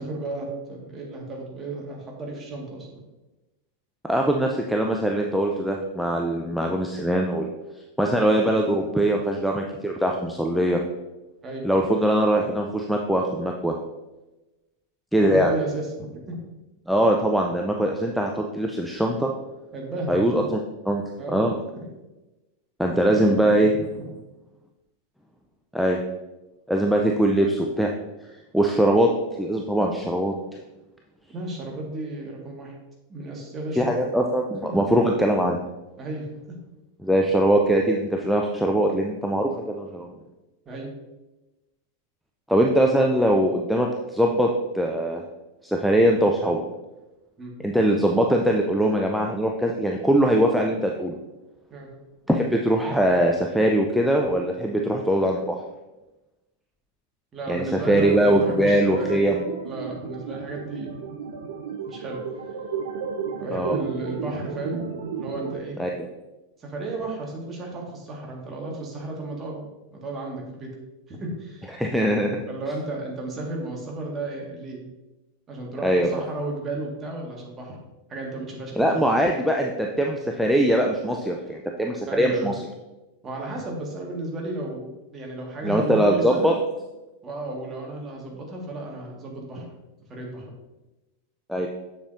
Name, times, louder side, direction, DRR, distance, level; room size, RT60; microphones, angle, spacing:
voice 1, 0.0-3.0 11.4-11.7 15.2-16.5 19.7-20.5 21.2-21.4 21.7-21.9 23.0-23.7 24.0-24.1 31.3-32.8 33.1-34.0 34.6-34.7 36.0-36.5 40.7-40.9 47.4-47.5 51.7-51.9 57.3-59.3 59.6-60.9 61.9-62.2 63.4-64.8 65.1-65.8 66.6-70.7 71.1-71.7 72.5-74.8 75.5-77.8 78.1-79.0 82.1-82.5 83.2-86.5 87.2-89.7 90.1-90.5, right 2 dB, 20° right, -1 dB, 1.7 m, -33 dB
voice 2, 4.0-7.5 8.0-10.8 11.6-13.7 15.1-15.5 16.9-19.3 20.1-20.6 20.9-21.0 21.3-21.6 22.8-23.7 25.7-26.0 26.7-27.9 28.5-29.1 29.4-30.3 33.8-35.6 37.0-40.1 42.5-44.5 44.7-45.2 45.6-46.6 47.6-51.2 52.3-55.6 57.5-59.4 63.5-63.8 65.8-65.9 71.7-72.4 75.8-76.1 78.8-82.5 85.6-86.5 91.5-91.7, right 1 dB, ahead, 0 dB, 0.5 m, -22 dB
sound 1, 57.8-65.6, right 6 dB, 60° right, 0.8 m, -33 dB
7.2 x 7.0 x 2.6 m, 1.1 s
figure-of-eight pair, 90°, 0 cm